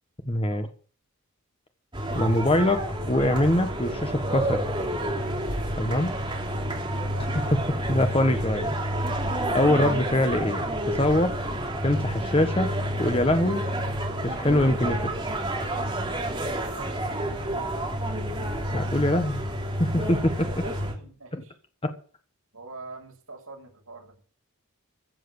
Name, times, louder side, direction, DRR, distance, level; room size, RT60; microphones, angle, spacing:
voice 1, 0.3-0.7 2.1-4.6 5.8-6.1 7.2-7.6 7.9-8.8 9.5-11.3 11.8-12.7 13.0-13.6 14.2-15.1 18.7-19.4 19.8-20.6 21.3-21.4 21.8-21.9, left 1 dB, 25° left, 7 dB, 1.3 m, -24 dB
sound 1, 1.9-20.9, right 1 dB, 20° right, 3.0 m, -29 dB
voice 2, 7.0-7.3 16.7-17.5 20.4-21.5 22.5-24.1, right 3 dB, 70° right, 1 dB, 6.2 m, -44 dB
15.0 x 7.8 x 8.0 m, 0.43 s
head